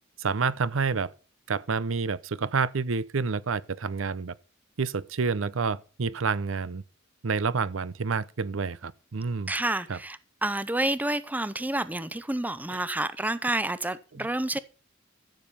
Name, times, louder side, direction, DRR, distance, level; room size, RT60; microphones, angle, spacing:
voice 1, 0.2-1.1 1.5-4.3 4.8-6.8 7.2-9.5 9.9-10.0 12.7-12.8 14.2-14.3, right 5 dB, 85° right, 0.7 m, -28 dB
voice 2, 9.5-14.6, right 1 dB, 10° right, 0.6 m, -29 dB
14.5 x 7.2 x 5.6 m
head